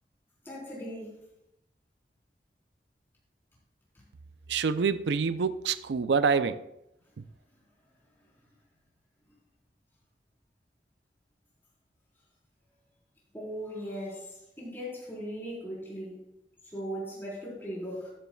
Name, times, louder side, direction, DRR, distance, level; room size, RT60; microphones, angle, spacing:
voice 1, 0.4-1.2 3.9-4.0 13.3-16.2 16.6-18.1, equal, 15° left, 4.0 m, -38 dB
voice 2, 4.5-6.7 7.2-7.3, right 5 dB, 85° right, 0.4 m, -27 dB
13.5 x 10.0 x 2.3 m
head